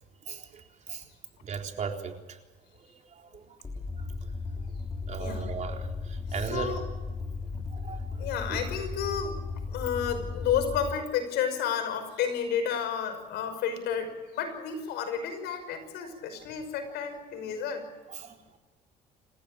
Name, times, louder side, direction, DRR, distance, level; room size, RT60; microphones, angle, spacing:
voice 1, 0.3-1.1 1.4-2.4 3.1-3.4 5.1-6.7 7.7-8.6 16.4-16.5 17.5-17.6 18.1-18.4, right 6 dB, 45° right, 3 dB, 3.9 m, -37 dB
sound 1, 3.6-10.9, left 4 dB, 20° left, 3.4 m, -36 dB
voice 2, 5.2-5.6 6.5-6.8 7.5-7.6 8.2-9.4 9.7-17.8, left 8 dB, 85° left, 8 dB, 5.8 m, -31 dB
28.5 x 15.5 x 8.9 m, 1.3 s
cardioid pair, 110°, 17 cm